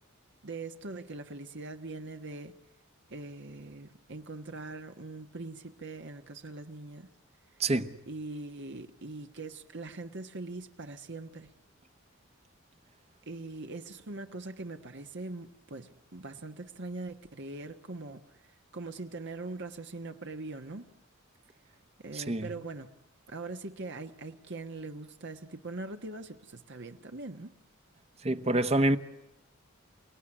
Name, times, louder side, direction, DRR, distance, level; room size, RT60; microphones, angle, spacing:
voice 1, 0.4-2.5 3.1-7.1 8.1-11.5 13.3-20.9 22.0-22.9 23.3-27.5, right 2 dB, 60° right, 1.4 m, -42 dB
voice 2, 7.6-7.9 22.1-22.5 28.2-29.0, right 1 dB, 30° right, 1.1 m, -26 dB
29.5 x 18.0 x 10.0 m
head